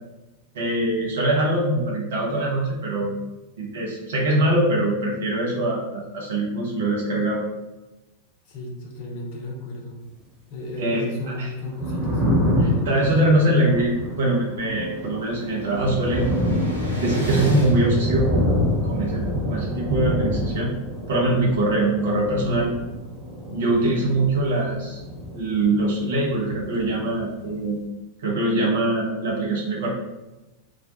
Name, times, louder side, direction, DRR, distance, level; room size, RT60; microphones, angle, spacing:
voice 1, 0.5-3.1 3.6-7.4 10.8-11.5 12.6-16.3 17.0-18.4 18.8-20.7 21.1-22.7 23.5-25.0 25.3-27.8 28.2-29.9, right 1 dB, 60° right, -3 dB, 0.6 m, -23 dB
voice 2, 8.5-10.0 10.5-12.2, left 1 dB, 45° left, -1 dB, 0.6 m, -33 dB
Thunder, 11.6-26.0 26.3-27.5, equal, 20° right, 1.0 m, -26 dB
sound 1, 13.7-13.8 14.0-18.9, equal, 85° left, 0.6 m, -41 dB
2.4 x 2.1 x 2.7 m, 1.0 s
figure-of-eight pair, 90°, 0 cm